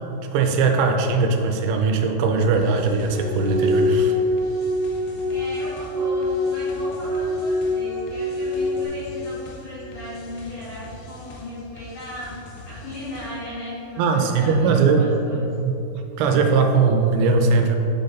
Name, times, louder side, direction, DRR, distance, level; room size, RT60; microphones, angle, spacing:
voice 1, 0.3-4.2 14.0-15.1 15.4-17.8, right 4 dB, 90° right, 4 dB, 2.8 m, -20 dB
sound 1, 2.5-13.6, left 2 dB, 80° left, 2.6 m, -43 dB
sound 2, 3.1-8.9, left 1 dB, 70° right, 2.1 m, -24 dB
voice 2, 5.3-12.4 12.6-15.5, left 1 dB, 65° left, -10 dB, 1.9 m, -36 dB
9.0 x 4.0 x 3.9 m, 2.9 s
omnidirectional pair, 4.9 m